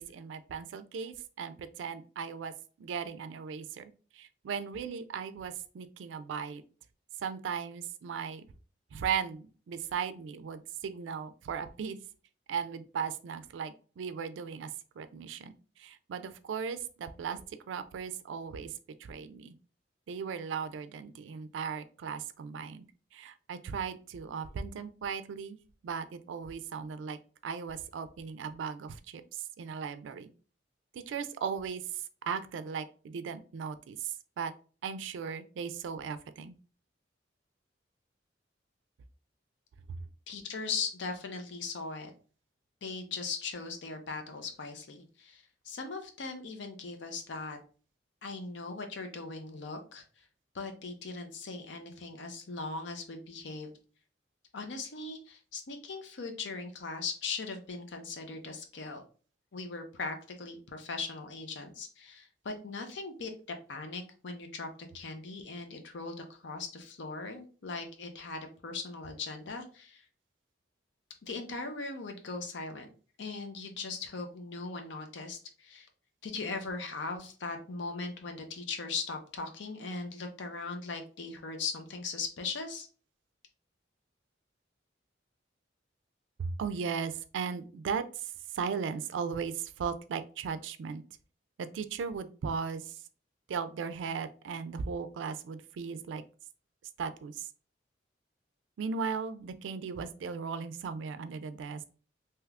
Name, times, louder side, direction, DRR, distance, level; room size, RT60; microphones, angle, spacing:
voice 1, 0.0-2.5 2.8-6.6 7.2-8.5 8.9-12.0 12.5-14.7 15.0-15.5 15.8-17.4 17.7-18.7 19.0-19.6 20.1-22.9 23.1-25.6 25.8-30.3 30.9-31.8 32.3-34.5 34.8-36.5 39.9-40.0 86.4-91.0 91.6-93.0 93.5-96.2 97.0-97.5 98.8-101.9, right 6 dB, 85° right, 12 dB, 0.3 m, -37 dB
voice 2, 40.3-42.1 42.8-47.6 48.2-50.2 50.5-53.7 54.5-59.0 59.5-63.3 63.7-64.7 64.9-70.1 71.2-72.9 73.2-75.9 76.2-82.9, left 4 dB, 75° left, 5 dB, 0.6 m, -39 dB
3.4 x 2.8 x 2.3 m, 0.39 s
head